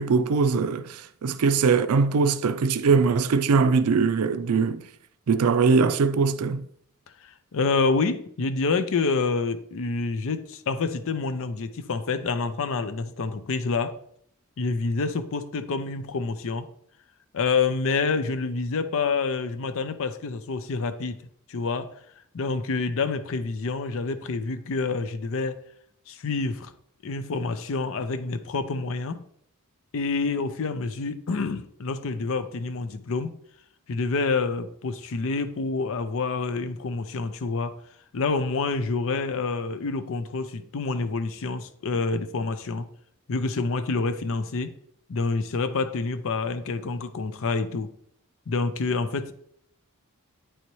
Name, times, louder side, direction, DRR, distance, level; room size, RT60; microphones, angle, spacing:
voice 1, 0.0-4.9 5.3-6.6, right 5 dB, 85° right, 0.4 m, -21 dB
voice 2, 7.2-14.0 14.6-16.7 17.3-22.0 22.3-25.6 26.1-26.7 27.0-29.2 29.9-33.4 33.9-37.8 38.1-42.9 43.3-44.7 45.1-47.9 48.5-49.3, left 4 dB, 65° left, 0.5 m, -27 dB
9.2 x 4.1 x 3.1 m
head